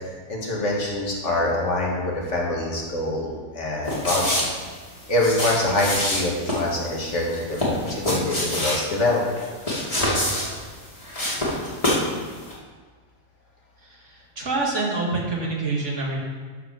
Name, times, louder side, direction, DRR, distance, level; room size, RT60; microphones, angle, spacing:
voice 1, 0.3-4.5 5.1-9.2, left 2 dB, 60° left, -2 dB, 2.1 m, -25 dB
sound 1, 3.9-12.2 12.4-12.5, left 1 dB, 25° left, 2.3 m, -26 dB
voice 2, 14.4-16.2, right 3 dB, 60° right, -3 dB, 2.2 m, -25 dB
12.0 x 4.6 x 6.3 m, 1.5 s
omnidirectional pair, 1.4 m